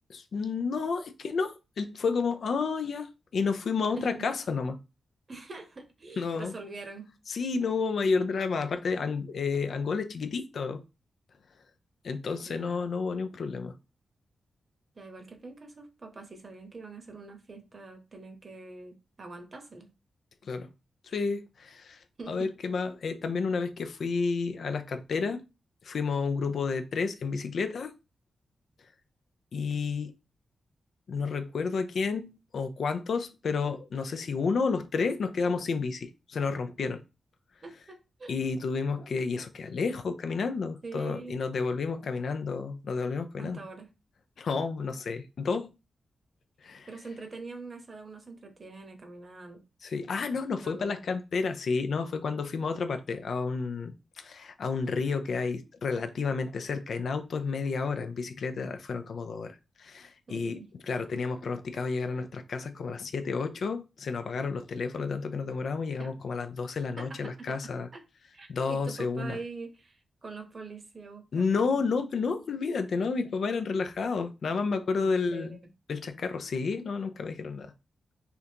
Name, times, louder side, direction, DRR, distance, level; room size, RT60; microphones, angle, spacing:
voice 1, 0.1-4.8 6.2-6.5 7.3-10.8 12.0-13.7 20.4-20.7 21.0-25.4 25.8-27.9 29.5-30.1 31.1-37.0 38.3-43.6 44.4-45.7 46.6-46.9 49.8-67.9 68.5-69.4 71.3-75.6 75.9-77.7, left 4 dB, 70° left, 0.4 m, -31 dB
voice 2, 4.0-4.3 5.3-7.1 12.5-12.8 15.0-19.9 22.2-22.5 36.8-36.9 37.6-38.4 40.8-41.4 43.4-43.9 46.9-49.6 50.6-51.0 60.3-60.7 66.0-66.1 67.0-67.6 67.9-68.0 68.3-71.8 75.3-75.6, right 3 dB, 45° right, 0.8 m, -44 dB
3.3 x 2.5 x 2.8 m
cardioid pair, 85°, 0 cm